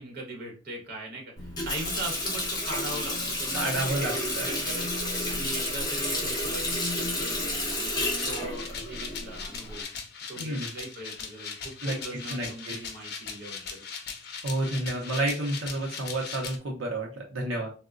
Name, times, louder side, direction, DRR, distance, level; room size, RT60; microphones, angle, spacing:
voice 1, 0.0-4.9 5.3-9.8 10.3-13.8, right 2 dB, 50° right, 0 dB, 1.0 m, -40 dB
Water tap faucet, 1.4-9.8, left 1 dB, 20° left, 1.1 m, -31 dB
voice 2, 3.5-4.5 10.4-10.7 11.8-12.0 12.3-12.7 14.4-17.7, right 1 dB, 80° right, -1 dB, 0.6 m, -30 dB
sound 1, 8.1-16.6, left 6 dB, 55° left, 0.6 m, -39 dB
3.7 x 2.0 x 2.4 m, 0.36 s
head